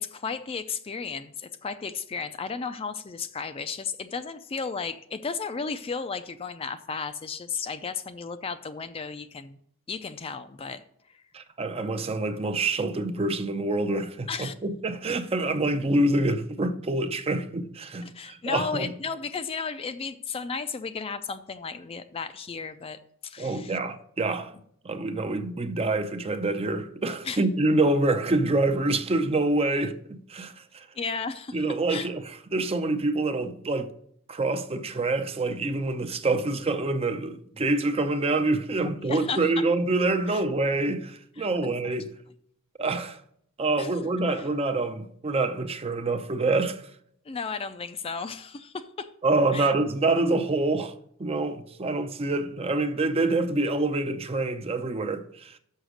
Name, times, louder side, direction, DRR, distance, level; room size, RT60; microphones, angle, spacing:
voice 1, 0.0-9.6 9.9-10.8 11.1-11.2 14.3-14.5 18.0-23.8 27.2-27.4 30.9-32.1 39.0-39.5 40.3-40.4 41.4-41.9 43.8-43.9 44.3-44.5 47.3-49.1 49.5-49.7, left 5 dB, 25° left, 0.4 m, -34 dB
voice 2, 11.3-18.9 23.4-24.5 24.8-30.9 31.5-32.2 32.5-33.9 34.3-42.1 42.8-43.2 43.6-46.8 49.2-50.9 51.2-55.5, right 2 dB, 25° right, 0.5 m, -26 dB
6.5 x 5.9 x 6.3 m
head